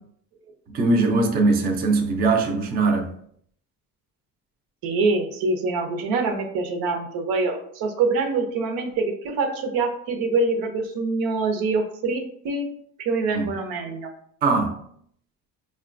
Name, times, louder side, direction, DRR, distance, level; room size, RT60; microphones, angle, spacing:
voice 1, 0.7-3.1 13.3-13.5 14.4-14.8, right 3 dB, 30° right, 1 dB, 0.3 m, -21 dB
voice 2, 4.8-12.7 13.0-14.1, right 3 dB, 85° right, 5 dB, 0.7 m, -25 dB
5.1 x 2.2 x 2.5 m, 0.65 s
cardioid pair, 175°, 35 cm